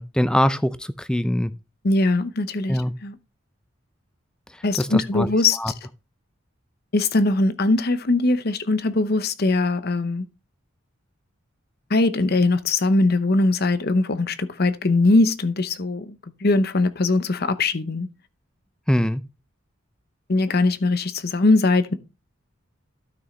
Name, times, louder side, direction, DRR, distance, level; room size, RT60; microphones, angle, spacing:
voice 1, 0.0-1.5 2.7-2.9 4.8-5.3 5.6-5.7 18.9-19.2, equal, 5° left, 0.4 m, -22 dB
voice 2, 1.8-3.1 4.6-5.7 6.9-10.3 11.9-18.1 20.3-21.9, left 2 dB, 50° left, 0.8 m, -21 dB
12.5 x 6.2 x 3.2 m
head